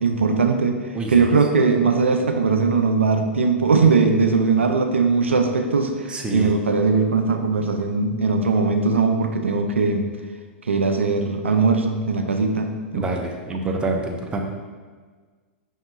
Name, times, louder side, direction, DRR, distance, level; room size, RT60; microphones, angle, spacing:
voice 1, 0.0-0.8 1.1-10.1 10.7-13.1 13.6-13.8, right 4 dB, 85° right, 5 dB, 0.4 m, -20 dB
voice 2, 6.1-6.5 12.9-14.4, right 2 dB, 15° right, 1 dB, 0.5 m, -26 dB
5.4 x 2.7 x 2.3 m, 1.5 s
hypercardioid pair, 105°, 6 cm